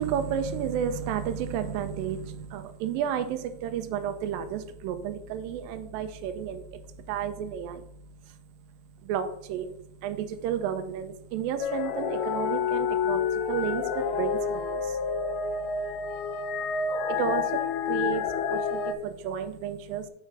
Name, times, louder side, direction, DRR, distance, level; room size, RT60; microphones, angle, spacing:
voice 1, 0.0-7.9 8.3-8.4 9.0-15.0 17.1-20.1, right 8 dB, 85° right, 8 dB, 2.3 m, -32 dB
sound 1, 11.6-18.9, left 6 dB, 80° left, 2.1 m, -29 dB
7.3 x 5.7 x 4.6 m, 0.72 s
omnidirectional pair, 4.2 m